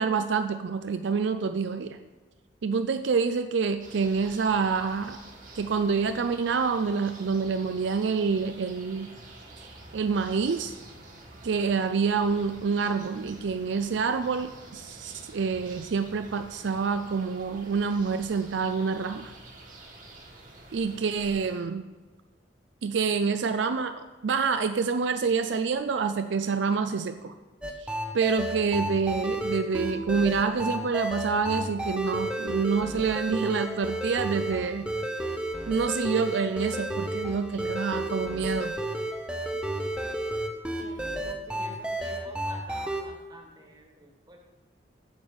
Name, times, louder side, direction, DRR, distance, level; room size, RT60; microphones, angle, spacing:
voice 1, 0.0-2.0 2.6-5.2 5.5-9.1 9.6-9.7 9.9-10.7 11.4-19.3 20.7-21.9 22.8-27.3 27.8-34.9 35.7-38.7, right 5 dB, 70° right, 9 dB, 0.4 m, -27 dB
sound 1, 3.8-21.6, right 2 dB, 45° right, 1.7 m, -48 dB
sound 2, 27.6-43.0, right 1 dB, 5° right, 0.7 m, -32 dB
voice 2, 40.8-44.4, right 2 dB, 20° right, 0 dB, 1.6 m, -48 dB
8.8 x 7.0 x 5.4 m, 1.3 s
head